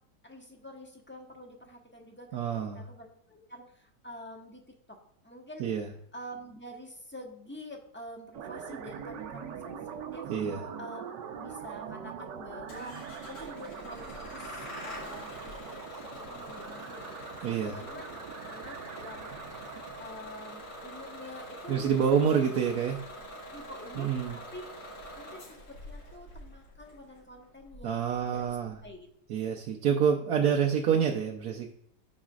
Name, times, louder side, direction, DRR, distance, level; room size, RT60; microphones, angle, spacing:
voice 1, 0.2-4.6 4.9-5.6 6.1-10.3 10.8-11.0 11.3-13.0 13.2-15.7 16.1-19.3 20.0-22.6 23.5-24.6 25.1-28.6 28.8-29.1, equal, 10° left, 1 dB, 1.0 m, -47 dB
voice 2, 2.3-2.9 5.6-5.9 10.3-10.6 17.4-17.8 21.7-23.0 24.0-24.4 27.8-28.7 29.3-31.7, right 7 dB, 65° right, 1 dB, 1.1 m, -27 dB
sound 1, 8.3-21.5, right 7 dB, 80° right, 1.4 m, -43 dB
Bus / Engine starting, 12.7-28.9, equal, 75° left, 2.7 m, -45 dB
13.0 x 4.9 x 2.4 m, 0.73 s
omnidirectional pair, 1.9 m